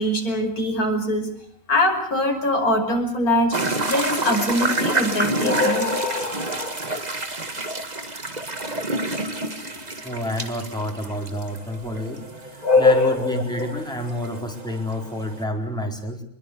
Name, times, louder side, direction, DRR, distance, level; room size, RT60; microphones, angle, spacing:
voice 1, 0.0-1.3 1.7-6.8 12.6-13.8, left 2 dB, 90° left, 4 dB, 6.0 m, -22 dB
sound 1, 3.5-15.4, right 2 dB, 30° right, 2.1 m, -29 dB
voice 2, 10.0-16.2, left 1 dB, 5° left, 2 dB, 4.4 m, -29 dB
26.0 x 22.0 x 8.1 m, 0.62 s
omnidirectional pair, 1.5 m